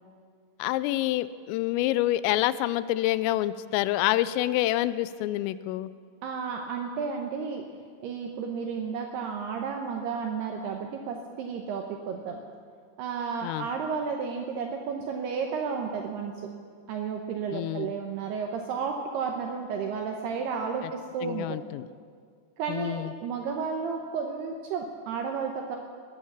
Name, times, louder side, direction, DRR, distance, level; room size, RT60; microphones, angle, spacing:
voice 1, 0.6-5.9 13.4-13.7 17.5-17.9 21.2-21.9 22.7-23.1, left 15 dB, 90° left, 16 dB, 3.2 m, -27 dB
voice 2, 6.2-7.6 8.0-12.4 13.0-16.3 16.9-21.6 22.6-25.8, right 5 dB, 80° right, 3 dB, 2.4 m, -32 dB
20.0 x 9.6 x 7.3 m, 2.1 s
omnidirectional pair, 5.8 m